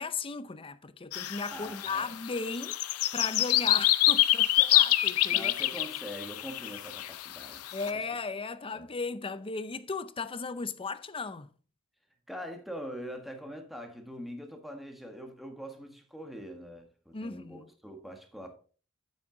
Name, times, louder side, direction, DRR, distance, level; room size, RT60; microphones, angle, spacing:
voice 1, 0.0-2.8 3.1-5.5 7.7-11.5 17.1-17.7, left 4 dB, 25° left, 0.6 m, -36 dB
sound 1, 1.1-7.9, left 15 dB, 90° left, 0.6 m, -26 dB
voice 2, 1.5-2.1 5.3-8.1 8.7-8.9 12.3-18.6, equal, ahead, 1.6 m, -43 dB
8.7 x 8.4 x 3.8 m
head